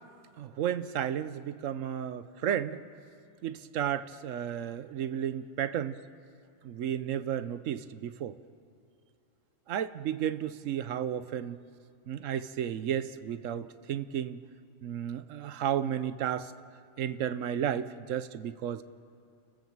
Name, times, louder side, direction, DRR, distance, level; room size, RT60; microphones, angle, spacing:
voice 1, 0.4-2.8 3.4-6.0 6.6-8.4 9.7-11.6 12.1-14.4 14.8-16.5 17.0-18.8, right 9 dB, 85° right, 13 dB, 1.1 m, -33 dB
29.0 x 13.5 x 7.3 m, 2.5 s
omnidirectional pair, 1.3 m